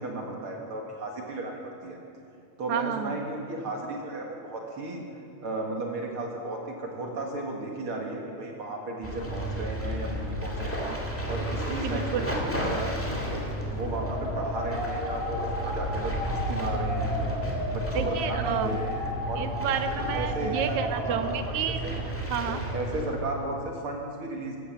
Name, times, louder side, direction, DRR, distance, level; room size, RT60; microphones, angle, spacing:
voice 1, 0.0-2.0 2.6-5.0 5.4-10.9 11.3-17.1 17.7-19.5 20.1-21.5 21.8-21.9 22.7-24.6, right 2 dB, 50° right, 0 dB, 2.2 m, -34 dB
voice 2, 2.7-3.2 10.8-11.1 11.8-12.4 18.0-18.7 19.4-21.8 22.3-22.6, right 9 dB, 80° right, 10 dB, 1.9 m, -31 dB
sound 1, 9.0-23.2, equal, 5° left, 1.5 m, -32 dB
sound 2, 13.9-21.3, left 1 dB, 35° left, 5.1 m, -35 dB
15.0 x 13.0 x 7.3 m, 2.6 s
omnidirectional pair, 3.5 m